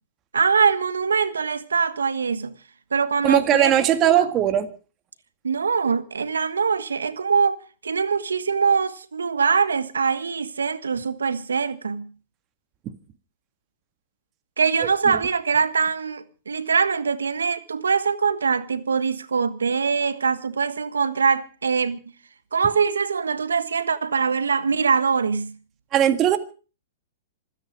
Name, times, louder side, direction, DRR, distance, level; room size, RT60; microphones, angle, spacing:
voice 1, 0.3-2.5 2.9-3.7 4.0-4.1 5.4-12.1 14.6-22.0 22.5-25.5, right 5 dB, 90° right, 1.4 m, -23 dB
voice 2, 3.2-4.7 14.8-15.2 25.9-26.4, right 10 dB, 30° right, 1.8 m, -19 dB
26.0 x 9.9 x 5.2 m
hypercardioid pair, 120°, 0 cm